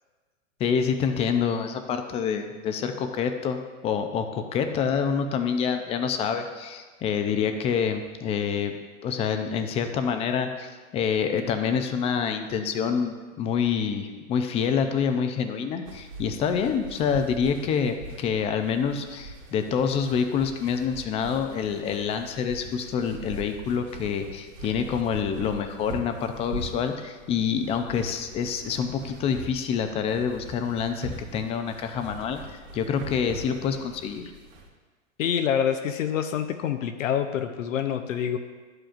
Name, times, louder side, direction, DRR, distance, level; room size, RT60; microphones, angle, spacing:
voice 1, 0.6-8.8 9.0-34.2, left 7 dB, 15° left, 7 dB, 0.4 m, -27 dB
sound 1, 15.8-34.7, right 1 dB, 85° right, 1.9 m, -42 dB
voice 2, 35.2-38.4, left 9 dB, 80° left, 7 dB, 0.7 m, -26 dB
11.5 x 7.8 x 2.5 m, 1.4 s
hypercardioid pair, 125°, 38 cm